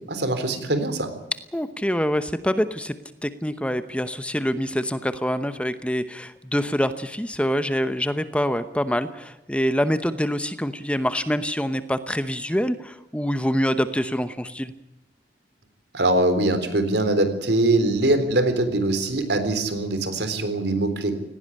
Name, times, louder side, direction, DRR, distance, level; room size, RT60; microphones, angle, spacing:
voice 1, 0.1-1.1 15.9-21.1, right 2 dB, 80° right, 9 dB, 3.8 m, -22 dB
voice 2, 1.5-2.9 3.2-14.7, equal, 5° left, 11 dB, 0.9 m, -25 dB
18.5 x 17.5 x 10.0 m, 0.94 s
head